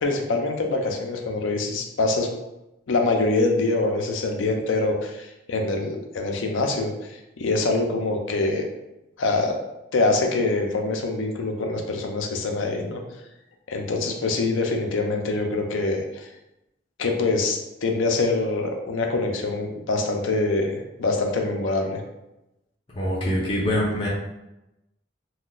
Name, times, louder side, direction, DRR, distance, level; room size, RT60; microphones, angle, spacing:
voice 1, 0.0-2.3 2.9-8.7 9.2-9.6 9.9-13.0 13.7-16.3 17.0-22.0, left 3 dB, 85° left, 3 dB, 0.5 m, -24 dB
voice 2, 23.0-24.1, equal, 25° left, -6 dB, 0.5 m, -24 dB
2.4 x 2.2 x 3.8 m, 0.93 s
head